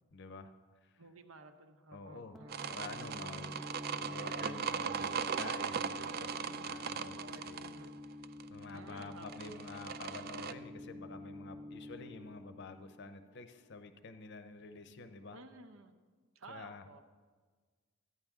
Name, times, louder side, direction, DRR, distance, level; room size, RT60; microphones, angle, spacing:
voice 1, 0.1-0.5 0.8-1.0 1.9-3.5 4.0-7.8 8.5-15.4 16.5-16.8, left 3 dB, 55° left, 9 dB, 0.6 m, -49 dB
voice 2, 1.0-2.8 7.1-7.9 8.7-9.6 15.3-16.0 16.3-17.0, right 2 dB, 70° right, 8 dB, 0.9 m, -54 dB
sound 1, 2.3-13.9, left 2 dB, ahead, 0.6 m, -49 dB
sound 2, 2.5-10.5, right 7 dB, 45° right, 0.4 m, -39 dB
14.0 x 9.6 x 3.6 m, 1.5 s
head